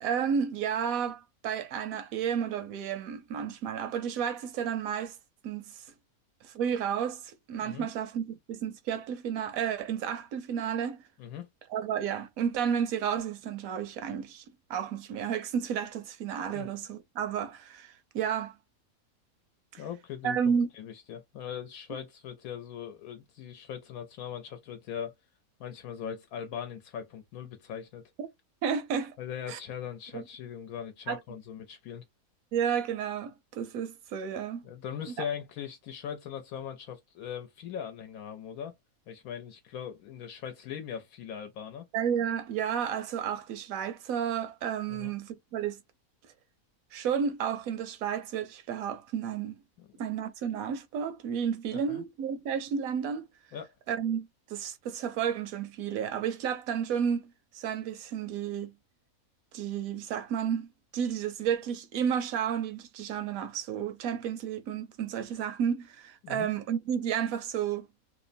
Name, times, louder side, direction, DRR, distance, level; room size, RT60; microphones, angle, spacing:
voice 1, 0.0-5.2 5.4-5.8 6.4-11.0 11.7-14.4 14.7-18.5 19.7-19.8 20.2-20.7 28.2-28.3 28.6-29.2 29.5-29.6 30.1-30.2 31.1-31.2 32.5-34.6 41.9-45.8 46.9-49.6 50.0-53.3 53.9-57.3 57.5-58.7 59.5-60.7 60.9-67.9, right 8 dB, 75° right, 1.0 m, -32 dB
voice 2, 19.8-20.4 20.7-25.1 25.6-28.0 29.2-32.0 34.6-38.7 39.1-41.8 44.9-45.1 49.8-49.9 51.7-52.0 53.5-53.7 66.2-66.5, left 8 dB, 80° left, 1.0 m, -40 dB
2.9 x 2.0 x 2.5 m
omnidirectional pair, 1.5 m